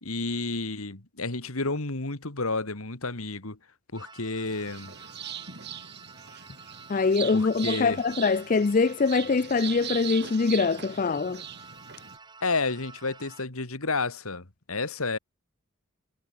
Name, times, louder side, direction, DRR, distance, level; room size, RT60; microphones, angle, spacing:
voice 1, 0.0-3.6 3.9-4.9 7.3-8.0 12.4-15.2, left 3 dB, 85° left, 2.6 m, -31 dB
sound 1, 3.9-13.4, right 4 dB, 20° right, 6.8 m, -50 dB
sound 2, 4.4-12.2, right 9 dB, 50° right, 3.0 m, -40 dB
voice 2, 6.9-11.4, left 4 dB, 40° left, 0.4 m, -24 dB
head